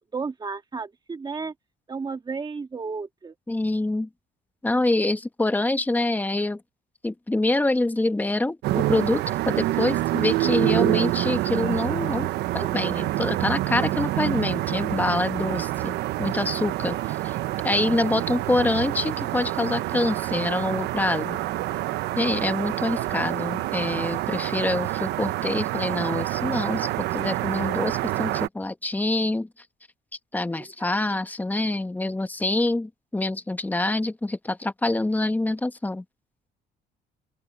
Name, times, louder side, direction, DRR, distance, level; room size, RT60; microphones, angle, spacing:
voice 1, 0.1-1.5 1.9-3.3, right 4 dB, 25° right, 1.8 m, -32 dB
voice 2, 3.5-4.1 4.6-6.6 7.0-17.4 17.6-21.4 22.2-29.5 30.3-36.0, left 2 dB, 10° left, 1.2 m, -26 dB
sound 1, 8.6-28.5, right 16 dB, 80° right, 0.9 m, -27 dB
open air
cardioid pair, 110°, 17 cm